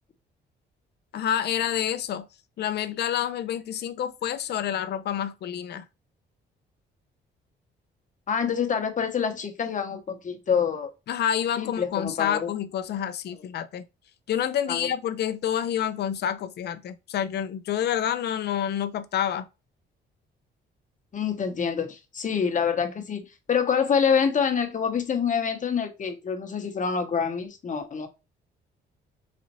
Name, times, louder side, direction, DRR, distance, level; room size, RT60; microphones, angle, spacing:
voice 1, 1.1-2.3 2.6-5.8 11.1-13.8 14.3-19.5, left 10 dB, 55° left, 0.5 m, -28 dB
voice 2, 8.3-10.9 11.6-12.5 14.7-14.9 21.1-23.2 23.5-28.1, left 6 dB, 40° left, 0.9 m, -26 dB
4.1 x 2.5 x 3.0 m
cardioid pair, 90°, 20 cm